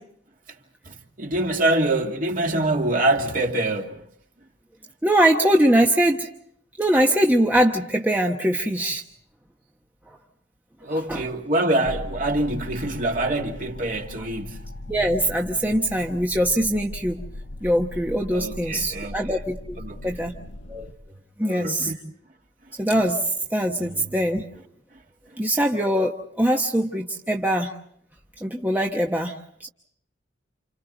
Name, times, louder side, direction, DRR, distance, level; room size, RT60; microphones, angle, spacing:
voice 1, 0.8-4.0 10.8-14.6 18.3-19.4 19.8-20.1 21.5-22.0 24.9-25.0, right 1 dB, 45° right, 2.3 m, -25 dB
voice 2, 5.0-6.3 6.8-9.0 11.1-11.2 14.9-17.2 17.6-19.8 20.0-20.3 20.7-20.9 21.4-21.9 22.8-23.2 23.5-24.5 25.4-27.7 28.4-29.3 29.6-29.7, right 1 dB, 10° right, 1.1 m, -22 dB
sound 1, 11.8-20.9, left 1 dB, 75° left, 1.6 m, -38 dB
29.5 x 28.5 x 4.0 m
head